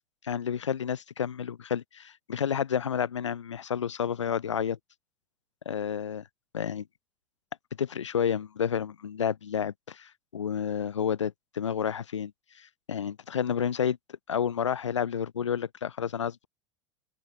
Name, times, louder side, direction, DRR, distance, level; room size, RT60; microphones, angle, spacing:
voice 1, 0.2-4.8 5.6-6.2 6.5-6.9 7.8-14.0 14.3-16.5, left 8 dB, 80° left, 1.2 m, -30 dB
open air
figure-of-eight pair, 80°, 15 cm